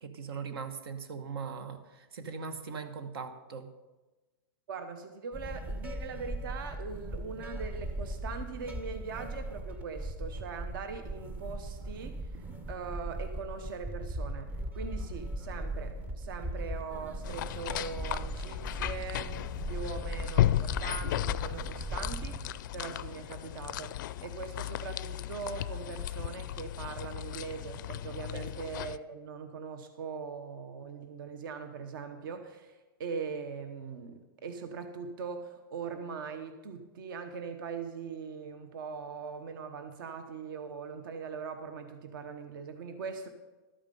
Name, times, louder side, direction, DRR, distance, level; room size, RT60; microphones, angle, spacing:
voice 1, 0.0-3.7 28.3-28.5, right 5 dB, 85° right, 9 dB, 1.2 m, -40 dB
voice 2, 4.7-12.4 12.7-19.3 19.7-43.3, right 5 dB, 65° right, 8 dB, 1.0 m, -41 dB
sound 1, 5.3-22.7, right 1 dB, 10° right, 0.5 m, -39 dB
sound 2, 17.2-29.0, left 13 dB, 55° left, 0.4 m, -35 dB
12.5 x 8.7 x 5.4 m, 1.2 s
supercardioid pair, 170°, 12 cm